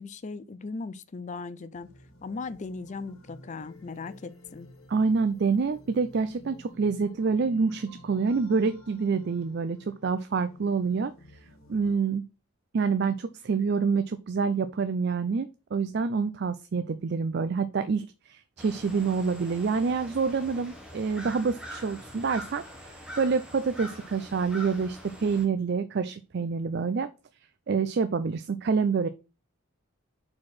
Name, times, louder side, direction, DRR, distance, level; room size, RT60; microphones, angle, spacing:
voice 1, 0.0-1.9 2.2-4.7, left 4 dB, 35° left, 0.4 m, -38 dB
sound 1, 1.7-11.9, left 1 dB, 70° left, 1.4 m, -52 dB
voice 2, 4.9-11.1 11.7-12.2 12.7-27.1 27.7-29.1, right 5 dB, 50° right, 0.4 m, -27 dB
sound 2, 18.6-25.4, equal, 5° right, 1.2 m, -44 dB
4.8 x 4.3 x 5.9 m
head